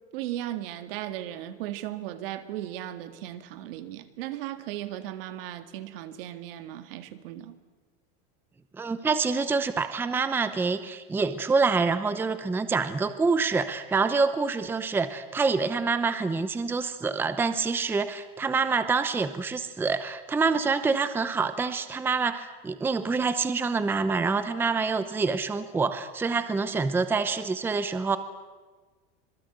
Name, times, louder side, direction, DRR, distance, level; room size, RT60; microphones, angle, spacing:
voice 1, 0.1-7.6, right 13 dB, 70° right, 2.0 m, -36 dB
voice 2, 8.8-28.2, right 4 dB, 5° right, 0.7 m, -26 dB
25.5 x 21.5 x 8.0 m
supercardioid pair, 160°, 29 cm